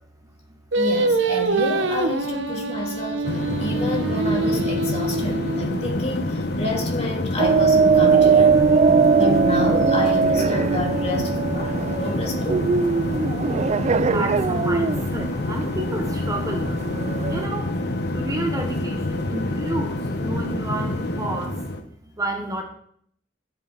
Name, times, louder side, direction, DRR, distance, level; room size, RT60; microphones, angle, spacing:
Singing, 0.7-6.0, right 2 dB, 80° right, 1.1 m, -25 dB
voice 1, 0.8-3.2 3.6-8.6 9.2-12.7, left 2 dB, 35° left, 0 dB, 2.7 m, -29 dB
voice 2, 2.5-2.9 8.0-8.1 9.0-9.1 10.5-10.6 11.7-12.0 13.3-13.5 14.0-16.8 17.3-17.7 18.1-21.9 22.2-22.6, right 1 dB, 20° right, 3 dB, 1.2 m, -31 dB
sound 1, 3.2-21.8, left 1 dB, 60° left, 1.3 m, -27 dB
sound 2, 7.4-17.5, right 5 dB, 35° right, 0.3 m, -20 dB
15.0 x 8.2 x 4.2 m, 0.65 s
head